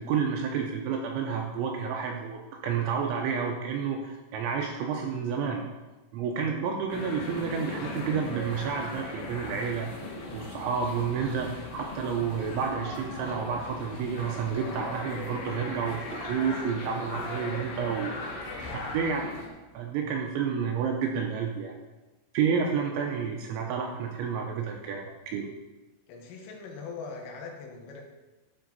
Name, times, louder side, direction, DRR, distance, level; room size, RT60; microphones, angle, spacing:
voice 1, 0.0-5.6 6.1-9.9 10.3-18.3 18.9-19.3 19.7-21.7 22.3-25.5, right 6 dB, 85° right, 1 dB, 2.8 m, -30 dB
sound 1, 6.9-19.5, left 2 dB, 65° left, 3.3 m, -38 dB
voice 2, 26.1-28.0, left 4 dB, 85° left, 2 dB, 3.7 m, -42 dB
12.5 x 4.8 x 4.0 m, 1.1 s
omnidirectional pair, 5.9 m